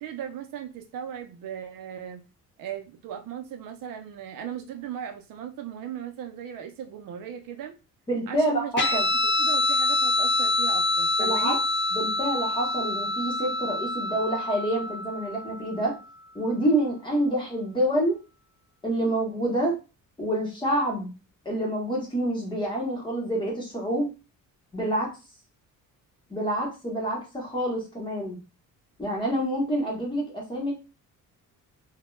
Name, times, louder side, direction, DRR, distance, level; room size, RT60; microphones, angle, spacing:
voice 1, 0.0-2.2 2.6-7.8 8.3-9.0 9.4-11.6, right 9 dB, 70° right, 5 dB, 0.5 m, -37 dB
voice 2, 8.1-9.1 11.2-11.6 11.9-15.9 16.3-18.2 18.8-19.8 20.2-21.1 21.4-24.1 24.7-25.1 26.3-28.4 29.0-30.7, right 1 dB, 15° left, -3 dB, 0.8 m, -27 dB
Guitar, 8.8-15.7, left 3 dB, 35° left, 0.4 m, -26 dB
2.2 x 2.1 x 3.0 m, 0.30 s
cardioid pair, 170°, 35 cm